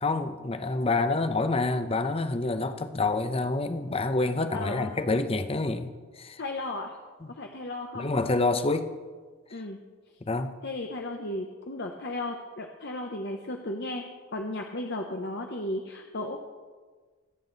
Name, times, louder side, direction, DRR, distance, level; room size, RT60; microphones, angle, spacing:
voice 1, 0.0-6.4 7.2-7.3 7.9-8.9 9.5-9.6 10.2-10.5, left 3 dB, 30° left, 0.8 m, -27 dB
voice 2, 4.5-4.9 6.4-7.0 7.3-8.1 9.5-9.8 10.6-14.0 14.3-16.4, left 2 dB, 55° left, 1.0 m, -35 dB
25.0 x 8.6 x 4.1 m
head